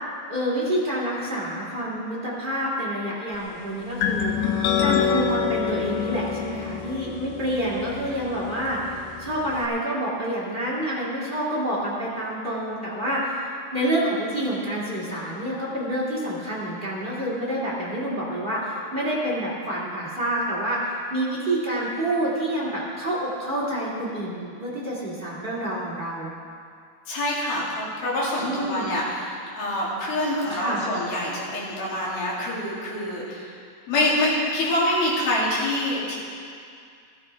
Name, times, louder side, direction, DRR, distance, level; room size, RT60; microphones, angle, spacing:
voice 1, 0.3-4.5 4.8-26.3 28.4-28.9 30.5-30.8, right 1 dB, 45° right, -7 dB, 0.6 m, -28 dB
sound 1, 4.0-9.7, left 7 dB, 85° left, 1.9 m, -27 dB
voice 2, 27.1-33.6 33.9-36.1, left 1 dB, 65° left, -6 dB, 4.3 m, -26 dB
16.0 x 13.5 x 3.3 m, 2.3 s
omnidirectional pair, 4.9 m